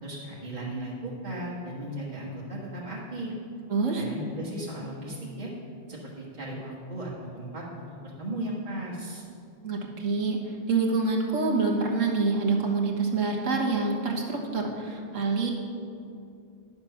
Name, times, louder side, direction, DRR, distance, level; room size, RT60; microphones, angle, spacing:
voice 1, 0.0-3.3 3.9-5.5 5.9-7.8 8.2-9.2, right 1 dB, 35° right, -8 dB, 1.6 m, -36 dB
voice 2, 3.7-4.0 9.6-10.4 10.7-15.5, right 3 dB, 85° right, 0 dB, 1.8 m, -26 dB
10.5 x 6.9 x 5.7 m, 2.5 s
omnidirectional pair, 1.3 m